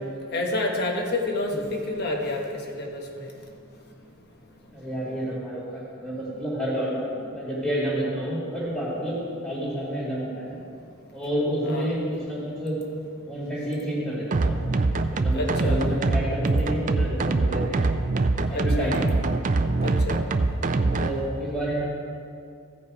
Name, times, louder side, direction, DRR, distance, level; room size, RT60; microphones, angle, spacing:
voice 1, 0.3-2.4 2.7-3.3 11.6-11.9 15.3-15.8 18.5-18.9 19.8-20.2, left 2 dB, 45° left, 1 dB, 1.3 m, -28 dB
voice 2, 4.7-10.5 11.1-12.8 13.3-14.8 15.1-17.9 18.5-19.0 20.9-21.9, right 1 dB, ahead, -8 dB, 2.2 m, -29 dB
sound 1, 14.3-21.1, right 3 dB, 35° right, 0.4 m, -23 dB
15.5 x 5.3 x 4.8 m, 2.4 s
head